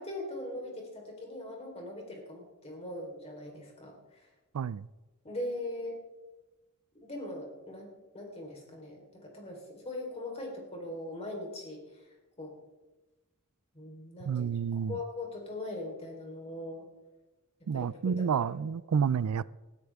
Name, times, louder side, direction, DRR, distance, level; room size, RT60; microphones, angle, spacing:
voice 1, 0.0-4.3 5.2-6.0 7.0-12.1 12.4-12.6 13.7-16.9 17.7-17.9 18.4-18.5, left 1 dB, 30° left, 3.9 m, -41 dB
voice 2, 4.5-4.9 14.3-15.0 17.7-19.5, right 7 dB, 85° right, 0.4 m, -30 dB
20.0 x 13.0 x 3.5 m
head